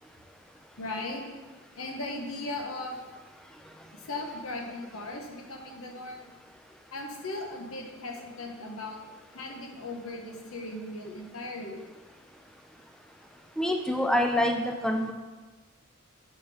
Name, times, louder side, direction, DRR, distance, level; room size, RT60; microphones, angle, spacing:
voice 1, 0.8-1.2 1.7-3.0 3.9-6.2 6.9-9.0 9.3-11.8, left 2 dB, 80° left, 1 dB, 1.0 m, -37 dB
voice 2, 13.6-15.1, left 1 dB, 5° left, 3 dB, 0.4 m, -26 dB
5.3 x 5.0 x 4.8 m, 1.3 s
head